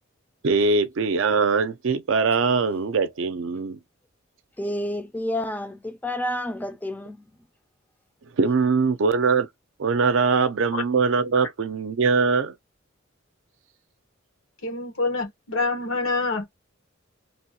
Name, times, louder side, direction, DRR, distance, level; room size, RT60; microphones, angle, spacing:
voice 1, 0.4-3.8 8.4-9.5 9.8-12.5, right 4 dB, 65° right, 0.5 m, -22 dB
voice 2, 4.6-7.3, left 1 dB, 10° left, 0.4 m, -29 dB
voice 3, 14.6-16.6, left 3 dB, 80° left, 1.1 m, -26 dB
3.0 x 2.3 x 2.7 m
head